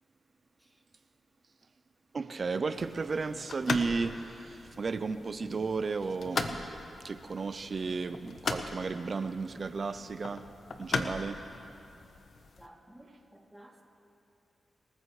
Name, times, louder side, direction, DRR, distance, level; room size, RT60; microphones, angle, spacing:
voice 1, 2.1-6.7 7.0-10.5 10.8-11.4, right 4 dB, 55° right, 11 dB, 0.6 m, -34 dB
sound 1, 2.7-12.7, left 4 dB, 65° left, 0.9 m, -39 dB
voice 2, 12.6-13.8, right 1 dB, 5° right, -2 dB, 2.8 m, -55 dB
26.5 x 14.5 x 3.2 m, 2.8 s
cardioid pair, 55°, 0 cm